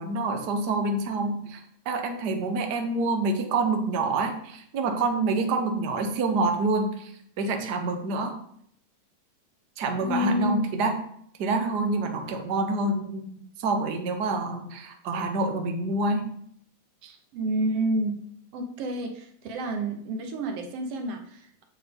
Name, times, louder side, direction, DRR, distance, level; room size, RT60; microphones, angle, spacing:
voice 1, 0.0-1.6 1.8-7.1 7.4-8.3 9.8-10.9 11.4-13.3 13.6-16.2 17.0-17.1, right 3 dB, 90° right, 4 dB, 0.8 m, -27 dB
voice 2, 10.0-10.6 17.3-21.6, right 1 dB, 65° right, 4 dB, 1.7 m, -29 dB
8.7 x 7.4 x 3.6 m, 0.67 s
omnidirectional pair, 3.5 m